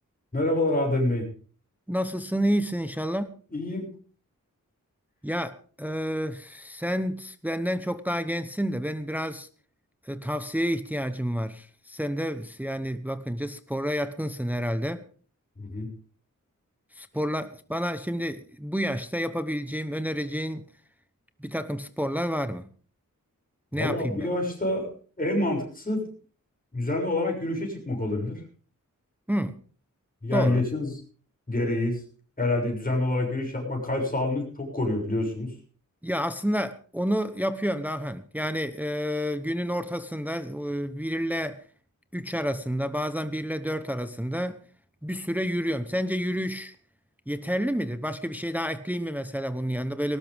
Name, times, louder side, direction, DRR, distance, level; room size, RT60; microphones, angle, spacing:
voice 1, 0.3-1.2 3.5-3.9 15.6-15.9 23.7-24.9 25.2-26.0 26.7-28.4 30.2-30.9 31.5-32.0 32.4-35.5, left 1 dB, 25° left, 6.8 m, -27 dB
voice 2, 1.9-3.3 5.2-9.5 10.0-15.0 16.9-20.6 21.4-22.7 23.7-24.3 29.3-29.6 30.3-30.6 36.0-41.6 42.1-44.6 45.0-46.8 47.3-50.2, equal, 5° right, 1.0 m, -29 dB
18.5 x 18.5 x 3.6 m
wide cardioid pair, 105°, 33 cm